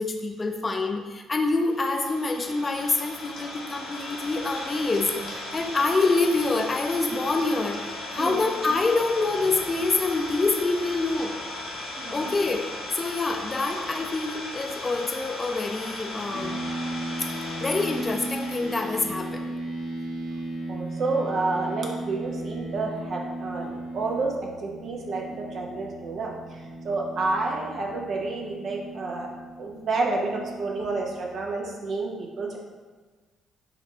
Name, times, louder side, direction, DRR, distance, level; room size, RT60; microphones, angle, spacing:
voice 1, 0.0-5.3 5.5-7.8 8.1-11.4 12.1-12.7 12.9-16.6 17.2-17.3 17.6-19.5, left 3 dB, 30° left, 2 dB, 0.6 m, -26 dB
Idling, 1.6-19.3, left 2 dB, 55° left, 0.9 m, -37 dB
voice 2, 8.2-8.5 12.0-12.3 20.7-24.3 24.6-26.6 26.8-29.3 29.6-32.6, right 3 dB, 50° right, -1 dB, 0.8 m, -29 dB
sound 1, 16.3-31.3, right 1 dB, 80° right, 1.3 m, -36 dB
4.3 x 2.6 x 4.5 m, 1.4 s
figure-of-eight pair, 45°, 0 cm